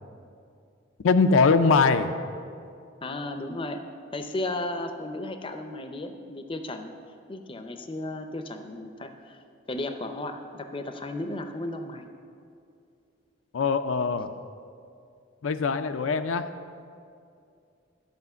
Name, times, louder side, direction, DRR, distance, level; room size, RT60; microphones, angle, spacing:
voice 1, 1.0-2.1 13.5-14.3 15.4-16.5, left 4 dB, 80° left, 8 dB, 0.5 m, -22 dB
voice 2, 3.0-6.9 7.3-9.4 9.7-12.1, left 2 dB, 25° left, 7 dB, 0.5 m, -34 dB
12.0 x 5.1 x 6.8 m, 2.4 s
head